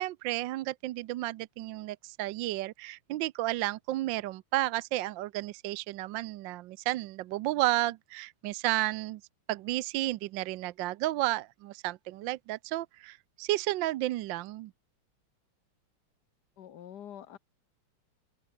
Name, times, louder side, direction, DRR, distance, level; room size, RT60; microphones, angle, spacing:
voice 1, 0.0-9.2 9.5-14.7, right 16 dB, 75° right, 1.2 m, -32 dB
voice 2, 16.6-17.4, left 10 dB, 55° left, 1.6 m, -46 dB
omnidirectional pair, 2.4 m